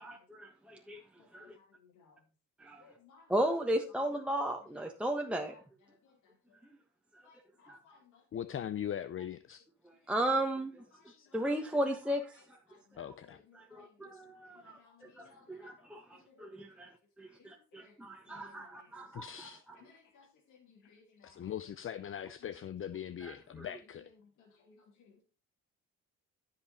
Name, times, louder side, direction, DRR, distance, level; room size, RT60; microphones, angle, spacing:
voice 1, 0.0-1.0 1.3-1.5 2.6-2.8 3.3-5.5 7.7-7.8 9.8-10.8 11.3-12.3 13.5-16.9 17.2-19.5 23.2-23.7, right 1 dB, 5° right, 1.3 m, -35 dB
voice 2, 1.2-2.3 2.8-3.5 3.9-4.0 4.6-4.7 5.5-6.6 7.2-8.4 10.0-10.1 10.9-15.8 16.1-16.5 16.8-16.9 17.2-18.0 18.2-19.4 19.7-22.1 22.4-22.6 23.6-25.2, left 5 dB, 80° left, 2.8 m, -63 dB
voice 3, 8.3-9.6 11.1-11.3 13.0-13.4 14.1-14.2 19.1-19.6 21.2-24.0, left 9 dB, 45° left, 0.6 m, -40 dB
12.5 x 5.7 x 4.3 m
cardioid pair, 90°, 30 cm